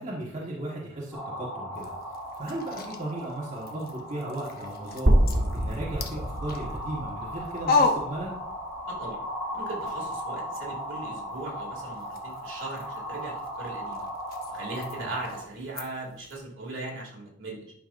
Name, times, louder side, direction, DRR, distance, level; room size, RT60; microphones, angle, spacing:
voice 1, 0.0-1.9 2.3-5.2 5.5-8.4 15.0-15.1, right 1 dB, 35° right, -5 dB, 1.5 m, -36 dB
sound 1, 1.1-15.4, equal, ahead, 2.1 m, -37 dB
sound 2, 1.7-8.9 9.2-16.4, left 3 dB, 50° left, 0.9 m, -35 dB
sound 3, 5.1-9.0, right 1 dB, 85° right, 1.5 m, -27 dB
voice 2, 8.9-9.2 9.5-14.1 14.5-17.7, right 2 dB, 65° right, -2 dB, 2.6 m, -38 dB
11.0 x 5.6 x 2.5 m, 0.72 s
head